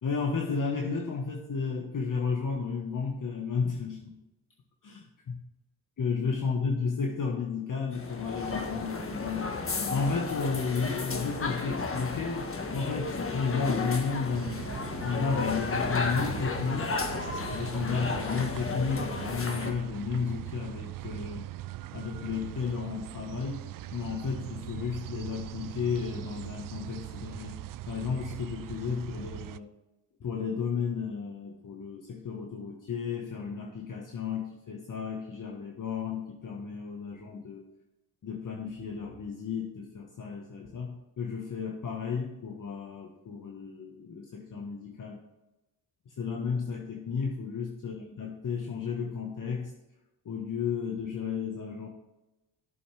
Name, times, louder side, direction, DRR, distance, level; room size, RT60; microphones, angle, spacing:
voice 1, 0.0-4.1 4.8-5.4 6.0-9.5 9.9-14.6 15.0-17.0 17.5-21.5 21.9-23.7 23.9-29.7 30.2-37.6 38.2-45.2 46.1-49.7 50.2-51.9, left 5 dB, 45° left, 1 dB, 1.5 m, -33 dB
sound 1, 7.9-19.7, left 4 dB, 30° left, 1.5 m, -33 dB
sound 2, 14.3-29.6, right 14 dB, 50° right, 0.5 m, -41 dB
12.5 x 6.9 x 3.5 m, 0.96 s
supercardioid pair, 70°, 43 cm